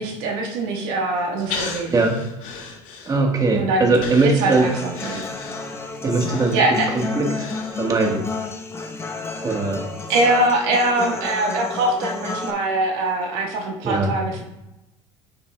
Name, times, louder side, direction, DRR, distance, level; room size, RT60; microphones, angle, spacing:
voice 1, 0.0-1.9 3.6-3.9 4.2-5.2 6.5-6.9 10.1-14.4, right 2 dB, 70° right, 1 dB, 1.4 m, -22 dB
Breathing, 1.5-3.5 3.9-8.1 8.5-8.6, left 5 dB, 55° left, 2.0 m, -35 dB
voice 2, 1.9-2.2 3.1-4.7 6.0-8.3 9.4-9.9 13.8-14.2, right 3 dB, 25° right, 1 dB, 1.4 m, -21 dB
Human voice / Acoustic guitar, 4.5-12.5, left 3 dB, 15° left, 0.9 m, -31 dB
8.9 x 6.1 x 2.3 m, 0.93 s
supercardioid pair, 100°, 16 cm